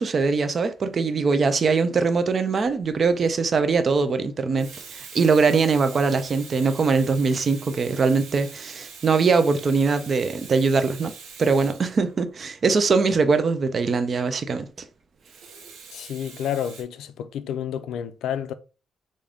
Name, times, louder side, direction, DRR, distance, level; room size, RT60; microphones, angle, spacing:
voice 1, 0.0-11.1 11.4-14.7, right 4 dB, 35° right, 0.4 m, -22 dB
Water tap faucet / Sink (filling or washing), 2.8-3.0 4.4-12.6 15.2-16.8, right 5 dB, 85° right, 1.2 m, -43 dB
voice 2, 15.9-18.5, left 9 dB, 75° left, 0.3 m, -30 dB
3.6 x 2.6 x 3.4 m
cardioid pair, 150°, 0 cm